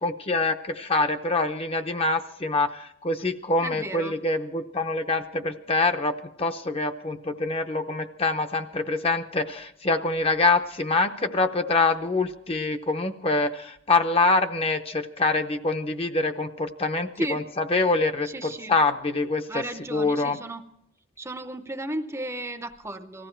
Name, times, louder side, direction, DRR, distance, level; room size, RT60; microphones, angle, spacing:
voice 1, 0.0-19.6 19.9-20.4, left 3 dB, 30° left, 8 dB, 0.7 m, -25 dB
voice 2, 3.6-4.1 17.2-17.4 18.2-18.8 19.5-20.6 21.2-23.3, right 1 dB, 15° right, 8 dB, 0.6 m, -34 dB
19.5 x 14.5 x 4.5 m, 0.75 s
head